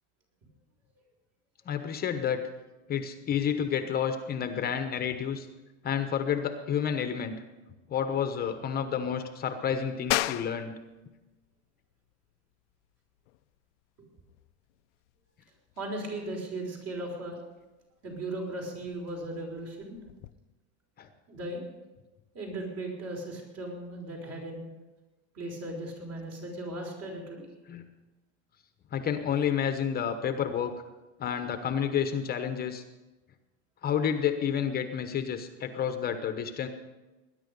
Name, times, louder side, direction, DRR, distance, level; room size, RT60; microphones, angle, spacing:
voice 1, 1.7-2.4 2.9-5.5 5.8-7.3 7.9-10.7 21.0-21.1 27.7-27.8 28.9-30.7 31.2-32.8 33.8-36.7, left 8 dB, 25° left, 8 dB, 1.0 m, -30 dB
sound 1, 10.1-20.3, left 18 dB, 70° left, 0.6 m, -39 dB
voice 2, 15.8-17.4 18.0-20.0 21.3-21.8 22.3-24.6 25.3-27.5, right 1 dB, 45° right, 0 dB, 5.3 m, -37 dB
20.0 x 10.5 x 5.4 m, 1.1 s
supercardioid pair, 140°, 36 cm